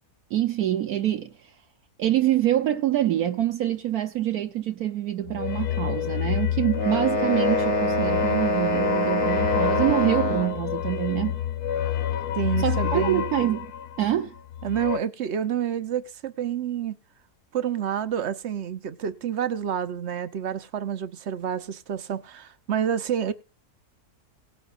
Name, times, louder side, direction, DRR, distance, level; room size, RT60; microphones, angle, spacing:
voice 1, 0.3-1.3 2.0-11.4 12.6-13.7 14.0-14.3, right 12 dB, 70° right, 1.2 m, -25 dB
sound 1, 5.3-15.0, left 10 dB, 70° left, 1.2 m, -29 dB
sound 2, 6.7-10.6, equal, 45° left, 1.7 m, -25 dB
voice 2, 12.4-13.2 14.6-17.0 17.5-23.3, right 9 dB, 50° right, 1.0 m, -28 dB
18.0 x 9.8 x 2.5 m
omnidirectional pair, 1.7 m